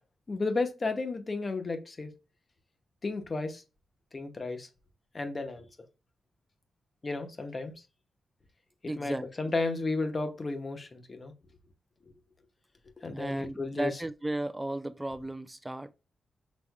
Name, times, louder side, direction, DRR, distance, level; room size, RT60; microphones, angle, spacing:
voice 1, 0.3-2.1 3.0-3.6 4.1-4.7 5.1-5.6 7.0-7.7 8.8-11.3 13.0-14.0, left 3 dB, 30° left, 0.9 m, -33 dB
voice 2, 8.9-9.5 13.1-15.9, right 1 dB, 10° right, 0.4 m, -35 dB
6.2 x 3.4 x 2.2 m
wide cardioid pair, 125°, 0 cm